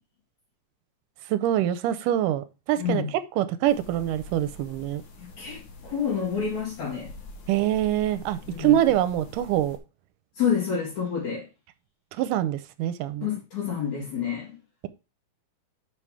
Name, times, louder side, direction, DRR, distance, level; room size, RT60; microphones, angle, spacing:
voice 1, 1.3-3.0 3.4-5.0 7.5-9.8 12.2-13.3, right 12 dB, 80° right, 2.1 m, -25 dB
voice 2, 2.8-3.1 5.2-7.1 8.5-8.8 10.4-11.5 13.2-14.6, left 7 dB, 60° left, 3.3 m, -28 dB
sound 1, 3.7-9.8, left 1 dB, 75° left, 1.0 m, -45 dB
5.7 x 5.7 x 4.7 m
omnidirectional pair, 3.9 m